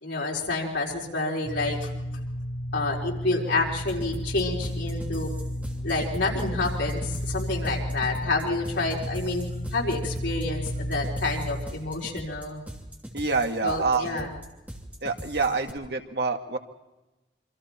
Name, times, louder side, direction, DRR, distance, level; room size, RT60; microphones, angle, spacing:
voice 1, 0.0-1.9 2.7-5.3 5.8-9.5 9.7-12.6 13.6-14.4, left 3 dB, 90° left, -2 dB, 4.6 m, -29 dB
sound 1, 1.4-11.7, equal, 40° left, 3.4 m, -33 dB
sound 2, 3.8-15.7, equal, 10° right, 2.8 m, -41 dB
voice 2, 13.1-14.3 15.0-16.6, right 4 dB, 65° right, 4 dB, 2.0 m, -27 dB
27.0 x 25.0 x 4.4 m, 1.1 s
head